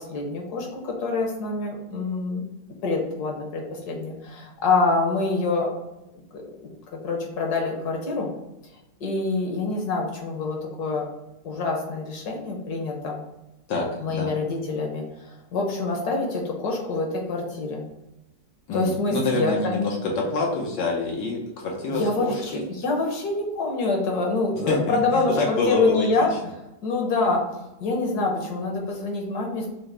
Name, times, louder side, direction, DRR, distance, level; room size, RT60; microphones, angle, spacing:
voice 1, 0.0-2.4 2.8-5.7 6.3-6.7 7.0-8.3 9.0-11.0 11.4-13.2 14.0-17.9 18.7-19.9 21.9-26.3 26.8-29.7, left 3 dB, 65° left, 0 dB, 1.5 m, -26 dB
voice 2, 13.7-14.3 18.7-22.6 24.7-26.1, left 2 dB, 85° left, -2 dB, 1.6 m, -26 dB
6.2 x 2.1 x 3.3 m, 0.94 s
omnidirectional pair, 1.9 m